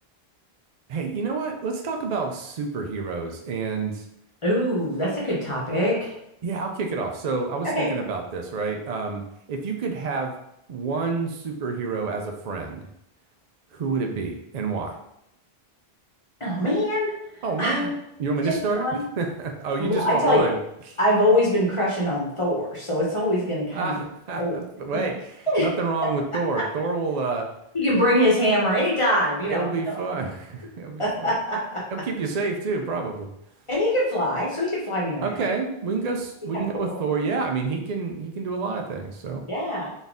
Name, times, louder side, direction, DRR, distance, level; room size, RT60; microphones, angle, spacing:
voice 1, 0.9-4.0 6.4-10.3 10.7-12.9 13.7-15.0 17.4-18.9 19.2-20.6 23.7-27.5 29.5-31.3 31.9-33.3 35.2-39.4, right 4 dB, 55° right, 3 dB, 0.5 m, -28 dB
voice 2, 4.4-6.1 7.6-7.9 16.4-17.1 17.6-17.9 18.4-19.0 19.8-20.5 21.0-24.0 24.4-24.6 24.9-25.1 25.5-25.7 27.7-29.9 31.0-31.8 33.7-35.5 36.5-37.3 39.5-39.9, equal, 35° left, -4 dB, 0.9 m, -23 dB
4.0 x 2.6 x 3.5 m, 0.80 s
omnidirectional pair, 1.0 m